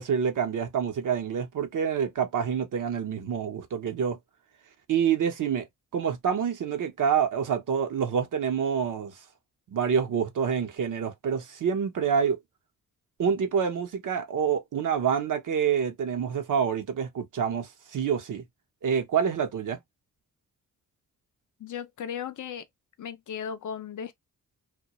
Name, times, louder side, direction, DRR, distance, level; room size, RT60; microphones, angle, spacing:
voice 1, 0.0-4.2 4.9-5.7 5.9-9.1 9.7-12.4 13.2-18.4 18.8-19.8, right 7 dB, 60° right, 0.7 m, -27 dB
voice 2, 21.6-22.7 23.0-24.1, left 8 dB, 60° left, 0.5 m, -36 dB
2.2 x 2.2 x 2.8 m
cardioid pair, 60°, 35 cm